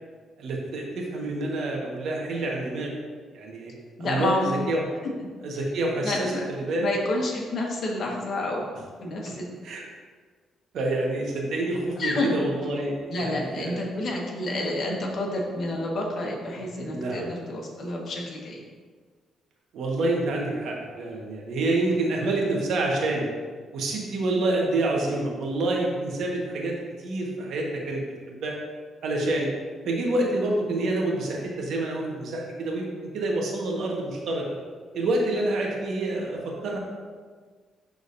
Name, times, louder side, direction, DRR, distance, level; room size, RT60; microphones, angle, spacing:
voice 1, 0.4-2.9 3.3-3.7 4.0-4.3 4.7-4.8 5.4-6.9 9.6-9.8 10.7-13.8 16.6-17.2 19.7-23.3 23.7-28.6 29.0-29.5 29.8-34.6 34.9-36.8, right 2 dB, 70° right, -1 dB, 1.5 m, -27 dB
voice 2, 4.0-4.5 6.0-6.4 6.8-8.7 9.0-9.5 12.0-12.4 13.1-18.6, left 1 dB, 55° left, -1 dB, 1.5 m, -29 dB
11.5 x 3.9 x 2.7 m, 1.5 s
cardioid pair, 90°, 0 cm